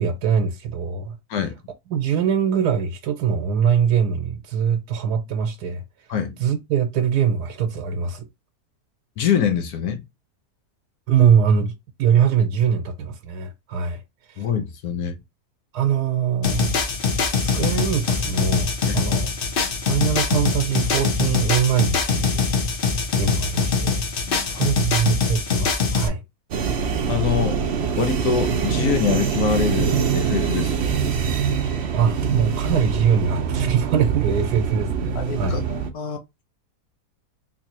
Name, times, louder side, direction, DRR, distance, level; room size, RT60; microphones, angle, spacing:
voice 1, 0.0-1.2 1.9-5.8 6.4-8.3 11.1-11.7 12.0-14.0 14.4-14.5 15.7-16.7 17.4-19.3 19.8-22.4 23.1-24.0 24.4-26.2 31.9-35.6, right 7 dB, 80° right, 1.3 m, -22 dB
voice 2, 9.2-10.0 14.4-15.2 18.9-19.1 24.3-24.6 27.1-27.6 28.0-30.9 35.1-36.2, left 7 dB, 70° left, 1.2 m, -25 dB
sound 1, 16.4-26.1, left 4 dB, 50° left, 0.6 m, -23 dB
sound 2, 26.5-35.9, right 6 dB, 60° right, 0.7 m, -24 dB
3.8 x 2.7 x 2.9 m
omnidirectional pair, 1.7 m